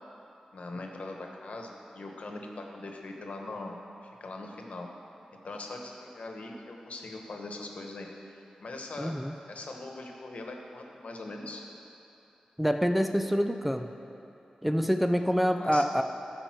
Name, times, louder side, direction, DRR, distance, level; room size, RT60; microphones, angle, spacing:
voice 1, 0.5-3.8 4.0-4.9 5.3-8.3 8.6-9.2 9.5-11.6 15.5-15.9, left 2 dB, 65° left, 2 dB, 1.3 m, -41 dB
voice 2, 9.0-9.3 12.6-13.9 14.6-16.0, equal, 5° right, 6 dB, 0.5 m, -26 dB
12.0 x 5.2 x 7.5 m, 2.9 s
cardioid pair, 45°, 2 cm